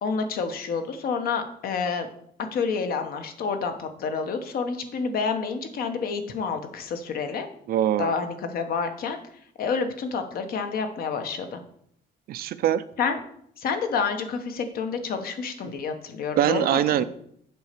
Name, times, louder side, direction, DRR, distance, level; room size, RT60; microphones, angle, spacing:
voice 1, 0.0-2.1 2.5-7.5 8.0-9.2 9.6-11.6 13.0-13.2 13.6-17.0, left 5 dB, 60° left, 7 dB, 1.0 m, -29 dB
voice 2, 7.7-8.1 12.3-12.8 16.4-17.0, right 11 dB, 60° right, 14 dB, 0.5 m, -23 dB
8.1 x 4.2 x 6.7 m, 0.68 s
cardioid pair, 180°, 17 cm